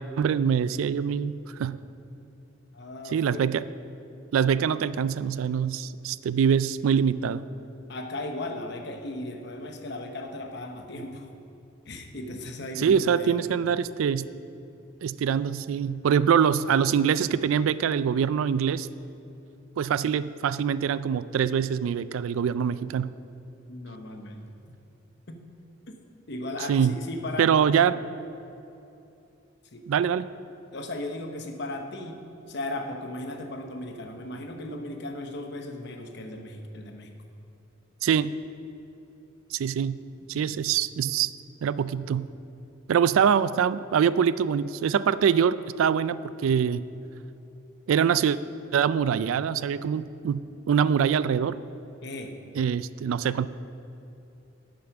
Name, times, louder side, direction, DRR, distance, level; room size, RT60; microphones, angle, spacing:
voice 1, 0.2-1.8 3.1-3.6 4.3-7.5 12.8-14.3 15.0-18.9 19.8-23.1 26.7-27.0 27.4-28.0 29.9-30.3 38.0-38.4 39.5-40.0 40.3-41.3 41.6-42.3 42.9-46.2 46.4-46.8 47.9-48.4 48.7-50.4 50.7-51.6 52.6-53.5, right 7 dB, 80° right, 16 dB, 0.3 m, -24 dB
voice 2, 2.7-3.5 7.9-11.3 11.9-13.6 23.7-24.5 25.3-25.4 25.9-26.0 26.3-27.6 29.7-29.9 30.7-37.1 40.3-40.5 52.0-52.4, left 1 dB, 55° left, 4 dB, 0.9 m, -36 dB
8.7 x 7.6 x 5.9 m, 2.8 s
head